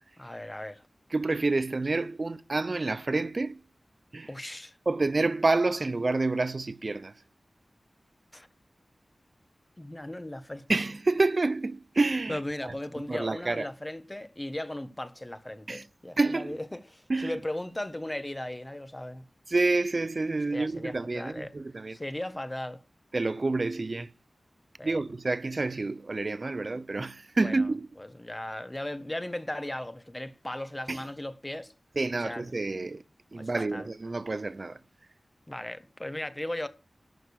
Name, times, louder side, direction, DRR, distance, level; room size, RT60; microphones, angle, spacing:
voice 1, 0.2-0.8 4.3-4.8 8.3-8.5 9.8-10.6 12.3-19.2 20.5-21.5 21.9-22.8 24.8-25.0 27.4-27.7 28.0-31.7 32.2-32.5 33.3-33.9 35.5-36.7, left 1 dB, 20° left, 1.2 m, -37 dB
voice 2, 1.1-3.6 4.1-4.3 4.9-7.1 10.7-12.7 13.1-13.6 15.7-15.8 16.2-16.6 17.1-17.4 19.5-22.0 23.1-24.1 24.8-27.9 30.9-31.0 32.0-33.0 33.3-34.8, right 3 dB, 45° right, 0.6 m, -28 dB
12.5 x 6.6 x 6.5 m
wide cardioid pair, 95°, 0 cm